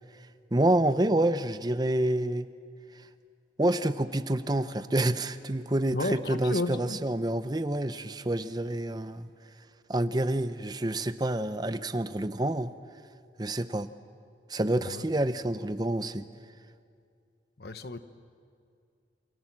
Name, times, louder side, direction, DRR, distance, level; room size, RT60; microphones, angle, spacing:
voice 1, 0.5-2.5 3.6-9.3 9.9-12.7 13.4-13.9 14.5-16.2, right 1 dB, 25° right, 0.7 m, -28 dB
voice 2, 5.9-7.0 14.8-15.1 17.6-18.0, left 2 dB, 60° left, 1.0 m, -32 dB
29.0 x 25.0 x 7.5 m
head